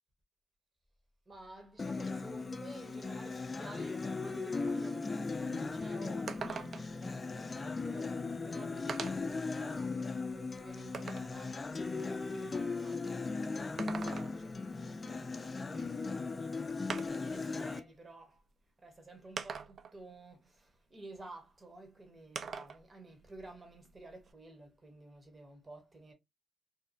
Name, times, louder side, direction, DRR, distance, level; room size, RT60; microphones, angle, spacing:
voice 1, 1.3-16.8 17.0-18.4 18.8-26.1, right 2 dB, 30° right, 1.0 m, -53 dB
Acoustic guitar, 1.8-17.8, left 3 dB, 35° left, 0.4 m, -38 dB
sound 1, 6.3-7.0 8.1-8.2 8.9-9.4 9.9-11.4 13.6-14.6 16.0-16.1 16.9-17.4 18.4-18.5 19.4-20.0 22.4-22.8 23.2-24.3, right 6 dB, 55° right, 0.3 m, -42 dB
2.8 x 2.2 x 2.5 m
cardioid pair, 70°, 0 cm